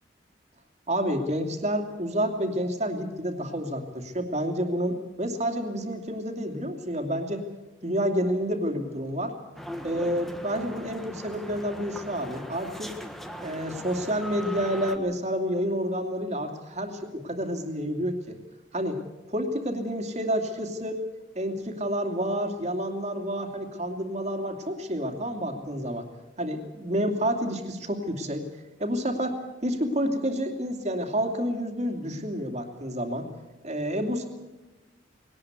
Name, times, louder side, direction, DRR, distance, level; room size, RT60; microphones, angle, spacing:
voice 1, 0.9-7.4 7.8-9.3 9.8-12.9 13.4-18.4 18.7-19.0 19.3-21.0 21.3-26.0 26.4-28.4 28.8-33.3 33.6-34.3, equal, 35° right, 5 dB, 2.7 m, -29 dB
sound 1, 9.6-15.0, equal, ahead, 1.4 m, -39 dB
20.5 x 18.5 x 8.3 m, 1.1 s
head